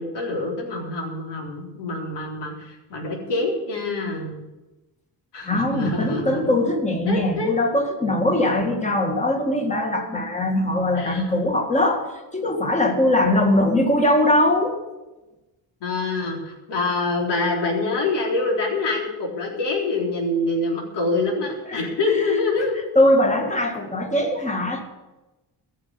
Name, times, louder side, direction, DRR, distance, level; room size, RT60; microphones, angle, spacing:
voice 1, 0.0-4.4 5.3-6.6 7.1-7.5 11.0-11.2 15.8-22.7, left 3 dB, 85° left, -1 dB, 4.0 m, -25 dB
voice 2, 5.4-12.1 12.3-14.8 21.7-21.8 22.1-22.4 22.9-24.8, left 1 dB, 15° left, 3 dB, 1.9 m, -21 dB
14.5 x 6.7 x 9.7 m, 1.1 s
wide cardioid pair, 160°, 40 cm